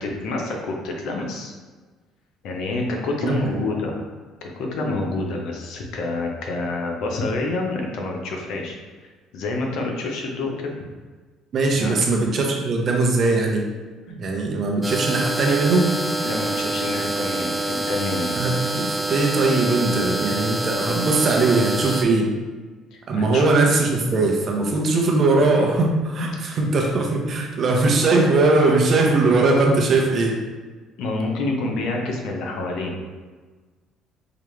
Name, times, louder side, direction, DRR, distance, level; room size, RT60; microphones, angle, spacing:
voice 1, 0.0-1.5 2.4-4.1 4.4-8.8 9.3-10.8 11.7-12.0 16.2-18.4 22.9-23.4 31.0-32.9, left 2 dB, 70° left, 1 dB, 0.7 m, -28 dB
voice 2, 3.2-3.6 11.5-13.6 14.1-15.9 18.3-22.3 23.1-30.4, right 3 dB, 50° right, 0 dB, 0.8 m, -20 dB
sound 1, 14.8-22.0, right 2 dB, 15° right, 0.4 m, -26 dB
4.8 x 2.4 x 3.2 m, 1.4 s
supercardioid pair, 90°, 0 cm